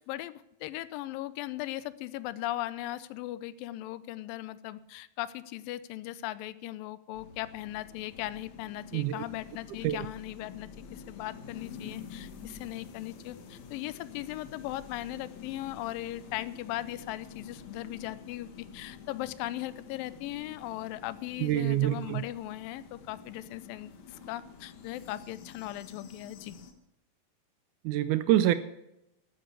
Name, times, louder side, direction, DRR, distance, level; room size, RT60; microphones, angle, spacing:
voice 1, 0.0-26.6, left 15 dB, 90° left, 16 dB, 2.4 m, -38 dB
sound 1, 7.1-26.7, left 6 dB, 60° left, 2.3 m, -49 dB
voice 2, 8.9-9.2 9.8-10.0 21.4-22.2 27.9-28.5, right 13 dB, 80° right, 13 dB, 1.9 m, -26 dB
12.5 x 9.4 x 6.7 m, 0.86 s
omnidirectional pair, 4.0 m